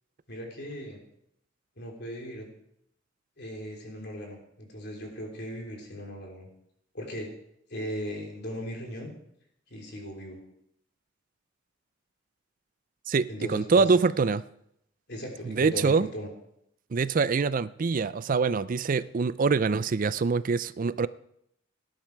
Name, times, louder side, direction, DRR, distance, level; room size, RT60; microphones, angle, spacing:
voice 1, 0.3-1.0 1.8-2.5 3.4-6.5 6.9-7.3 7.7-9.1 9.7-10.4 13.3-13.9 15.1-16.3, equal, 60° left, 3.5 m, -38 dB
voice 2, 13.1-14.4 15.5-16.1 16.9-21.1, right 4 dB, 45° right, 0.4 m, -25 dB
18.0 x 10.5 x 4.7 m
head